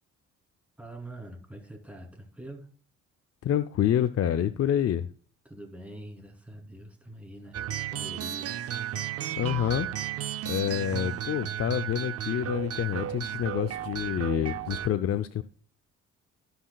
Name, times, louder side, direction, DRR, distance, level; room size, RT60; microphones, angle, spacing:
voice 1, 0.8-2.7 5.4-7.6 7.9-8.6, right 1 dB, 5° right, 3.2 m, -44 dB
voice 2, 3.4-5.0 9.4-9.9 10.4-15.4, left 10 dB, 50° left, 0.6 m, -27 dB
sound 1, 7.5-14.9, right 11 dB, 50° right, 0.6 m, -34 dB
16.5 x 5.9 x 2.3 m
cardioid pair, 90°, 30 cm